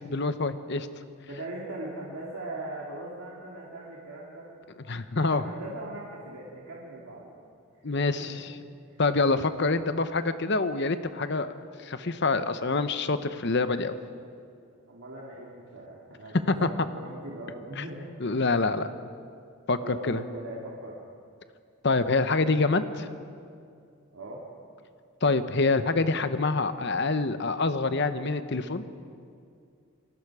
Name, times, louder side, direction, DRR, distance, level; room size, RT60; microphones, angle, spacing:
voice 1, 0.1-0.9 4.9-5.4 7.8-8.3 9.0-11.5 11.8-13.9 16.5-16.7 17.8-17.9 18.2-18.9 19.7-20.2 21.8-23.1 25.2-28.8, left 3 dB, 50° left, 11 dB, 0.9 m, -26 dB
voice 2, 1.3-4.5 5.1-7.4 8.0-8.4 8.9-9.0 14.9-18.1 19.8-21.0 24.1-24.4, right 1 dB, 75° right, -5 dB, 2.6 m, -40 dB
28.0 x 19.0 x 4.9 m, 2.4 s
head